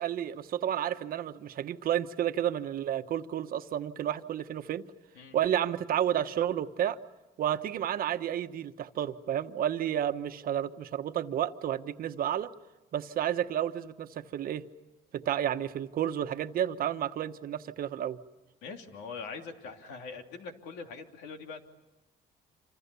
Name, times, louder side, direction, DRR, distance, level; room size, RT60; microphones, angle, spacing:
voice 1, 0.0-4.8 5.3-7.0 7.4-12.5 12.9-14.6 15.1-18.2, right 10 dB, 60° right, 9 dB, 1.2 m, -31 dB
voice 2, 18.6-21.6, left 4 dB, 90° left, 4 dB, 3.0 m, -42 dB
27.5 x 27.0 x 7.0 m, 1.1 s
cardioid pair, 110°, 17 cm